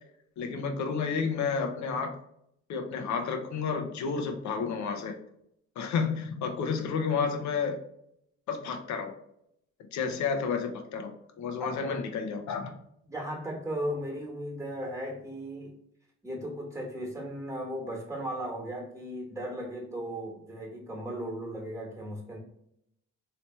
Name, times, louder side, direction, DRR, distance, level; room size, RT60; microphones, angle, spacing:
voice 1, 0.4-2.2 2.7-5.1 5.8-7.8 8.5-9.1 9.9-12.7, left 5 dB, 70° left, 4 dB, 0.7 m, -31 dB
voice 2, 11.6-12.0 13.1-15.7 16.2-22.4, equal, 10° right, 0 dB, 1.2 m, -36 dB
3.3 x 2.9 x 3.0 m, 0.74 s
cardioid pair, 90°, 30 cm